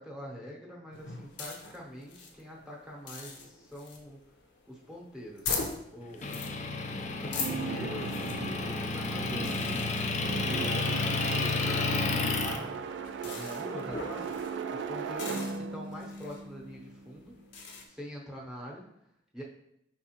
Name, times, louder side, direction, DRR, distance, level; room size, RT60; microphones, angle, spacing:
voice 1, 0.0-4.2 4.7-5.6 5.9-6.4 7.2-10.0 10.4-10.9 11.2-12.7 13.2-14.4 14.7-17.3 17.9-18.9 19.3-19.4, equal, 5° right, -3 dB, 0.8 m, -44 dB
sound 1, 0.9-17.9, left 4 dB, 75° left, 0.7 m, -43 dB
Motor vehicle (road) / Engine, 6.2-12.6, left 3 dB, 40° left, 0.4 m, -31 dB
sound 2, 7.3-17.3, right 5 dB, 75° right, 0.3 m, -38 dB
4.7 x 3.5 x 2.9 m, 0.78 s
head